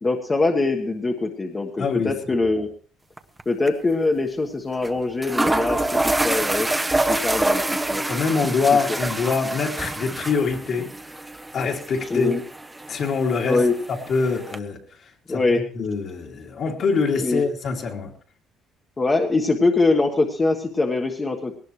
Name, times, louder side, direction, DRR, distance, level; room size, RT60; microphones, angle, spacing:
voice 1, 0.0-2.7 3.4-6.7 7.1-7.6 7.9-8.0 8.7-9.0 12.1-12.4 13.4-13.7 15.3-15.6 17.2-17.4 19.0-21.6, left 3 dB, 20° left, 1.4 m, -23 dB
voice 2, 1.8-2.1 8.0-10.9 11.5-12.3 12.9-13.6 13.9-14.8 15.3-18.1, left 5 dB, 45° left, 2.7 m, -24 dB
sound 1, 3.2-3.4 3.7-3.8 4.8-4.9 5.2-14.6, right 2 dB, 10° right, 0.9 m, -26 dB
20.0 x 18.0 x 3.2 m
cardioid pair, 140°, 0 cm